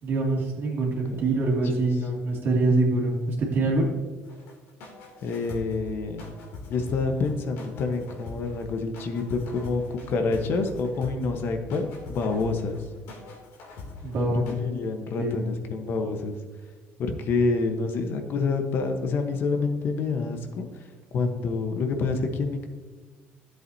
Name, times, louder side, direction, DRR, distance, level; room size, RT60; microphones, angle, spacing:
voice 1, 0.0-3.9 14.0-14.4 15.2-15.4, right 2 dB, 55° right, -1 dB, 2.4 m, -24 dB
sound 1, 4.3-14.5, left 3 dB, 90° left, 2.8 m, -43 dB
voice 2, 5.2-6.3 6.7-12.8 14.2-16.4 17.0-20.9 21.1-22.7, left 4 dB, 55° left, 5 dB, 1.1 m, -27 dB
12.5 x 7.8 x 2.8 m, 1.4 s
cardioid pair, 125°, 4 cm